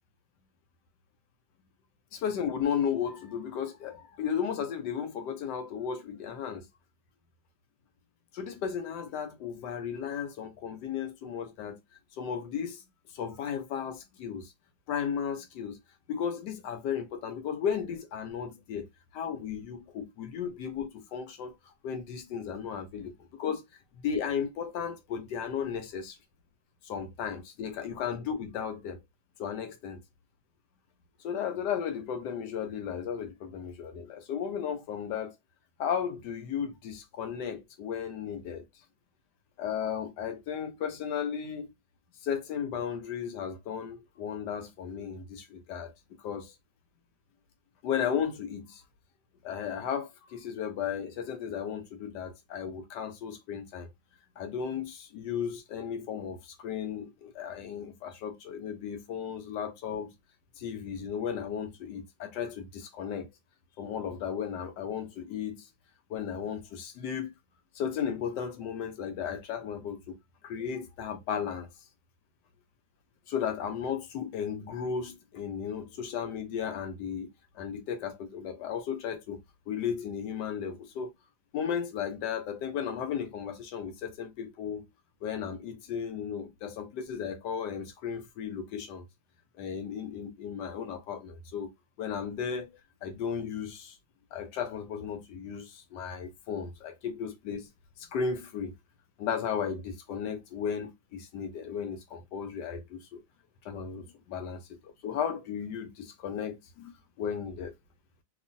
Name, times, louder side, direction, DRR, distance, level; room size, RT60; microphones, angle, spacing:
voice 1, 2.1-6.7 8.3-11.8 12.2-12.8 13.1-14.5 14.9-15.8 16.1-21.6 21.8-23.6 24.0-26.2 26.8-29.0 29.4-30.0 31.2-35.3 35.8-38.6 39.6-41.7 42.2-45.9 46.2-46.5 47.8-48.8 49.4-53.9 54.4-60.1 60.6-63.3 63.8-65.7 66.1-67.3 67.7-70.2 70.4-71.7 73.3-77.3 77.5-81.1 81.5-84.9 85.2-89.0 89.6-91.7 92.0-92.7 93.0-93.9 94.3-97.7 98.0-98.7 99.2-103.2 103.6-107.7, left 7 dB, 75° left, 1.1 m, -35 dB
3.1 x 2.4 x 2.5 m
omnidirectional pair, 2.1 m